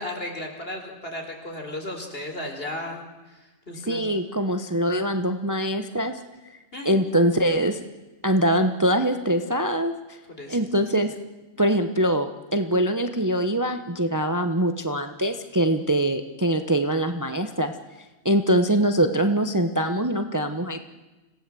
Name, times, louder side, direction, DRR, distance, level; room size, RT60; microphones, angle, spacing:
voice 1, 0.0-3.0 3.3-4.1 6.7-6.9 10.3-10.6, left 1 dB, 50° left, 3 dB, 4.2 m, -35 dB
voice 2, 3.8-6.2 6.8-7.8 8.2-10.2 10.5-11.1 11.6-17.7 18.2-20.8, right 1 dB, 15° right, 7 dB, 0.9 m, -23 dB
26.0 x 17.0 x 7.7 m, 1.2 s
omnidirectional pair, 1.3 m